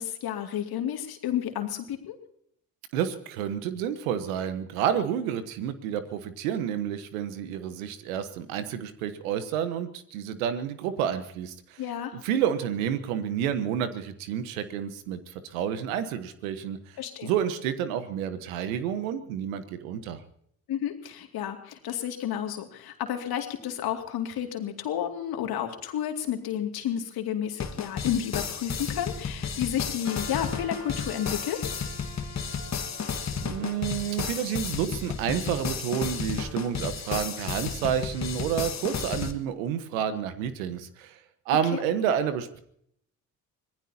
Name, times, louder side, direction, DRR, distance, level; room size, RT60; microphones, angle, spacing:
voice 1, 0.0-2.2 11.8-12.2 17.0-17.3 20.7-31.8 41.7-41.8, left 10 dB, 60° left, 5 dB, 2.5 m, -31 dB
voice 2, 2.9-11.8 12.2-17.0 17.2-20.2 33.4-41.2 41.5-42.6, right 9 dB, 80° right, 12 dB, 1.3 m, -30 dB
sound 1, 27.6-39.3, left 6 dB, 40° left, 1.7 m, -33 dB
Wind instrument woodwind instrument, 30.0-35.1, right 1 dB, 40° right, 4.8 m, -47 dB
25.5 x 19.0 x 2.8 m, 0.68 s
hypercardioid pair, 50°, 40 cm